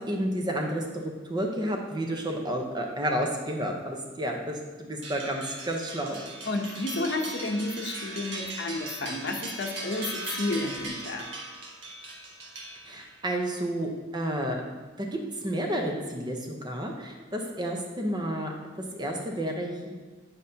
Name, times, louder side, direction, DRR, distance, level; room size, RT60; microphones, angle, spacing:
voice 1, 0.0-6.2 12.9-14.6 15.0-18.5 18.9-19.9, right 1 dB, 25° right, 1 dB, 0.8 m, -31 dB
sound 1, 5.0-13.2, right 2 dB, 70° right, 1.4 m, -39 dB
voice 2, 6.5-11.3, left 2 dB, 65° left, 3 dB, 0.8 m, -31 dB
9.8 x 5.2 x 2.8 m, 1.3 s
head